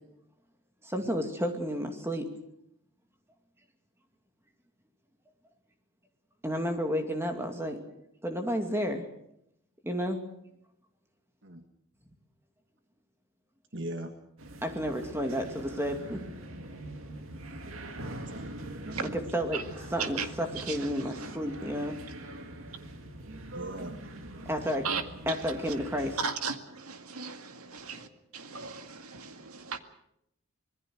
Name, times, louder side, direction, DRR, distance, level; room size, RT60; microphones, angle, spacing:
voice 1, 0.8-2.3 6.4-7.8 8.2-9.0 9.8-10.2 14.6-16.2 19.0-19.6 19.9-22.0 24.5-24.9 25.3-26.2, equal, 10° right, 4 dB, 2.4 m, -31 dB
voice 2, 13.7-14.1 18.0-18.6 18.8-19.2 23.5-24.0, right 1 dB, 55° right, 6 dB, 1.7 m, -40 dB
sound 1, 14.4-26.3, right 1 dB, 70° right, 2.3 m, -43 dB
voice 3, 20.6-21.4 24.8-25.0 26.2-28.1 28.3-29.8, right 5 dB, 85° right, 7 dB, 2.1 m, -36 dB
26.0 x 20.5 x 6.4 m, 0.77 s
head